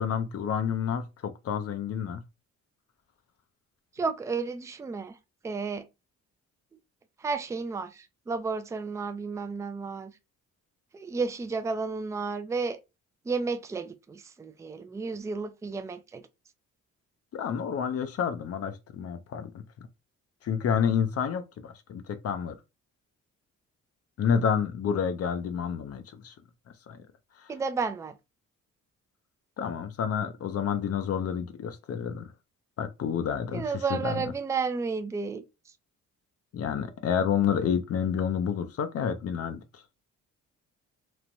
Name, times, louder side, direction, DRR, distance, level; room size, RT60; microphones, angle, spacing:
voice 1, 0.0-2.2 17.3-19.6 20.4-22.6 24.2-26.3 26.9-27.0 27.4-27.5 29.6-32.3 32.8-33.6 33.9-34.2 36.5-39.8, left 7 dB, 50° left, 0.5 m, -29 dB
voice 2, 3.9-5.2 5.4-5.8 7.2-10.1 10.9-12.8 13.2-16.2 24.9-25.0 27.5-28.2 33.5-35.4, right 4 dB, 10° right, 0.3 m, -32 dB
3.1 x 2.1 x 2.5 m
cardioid pair, 90°, 30 cm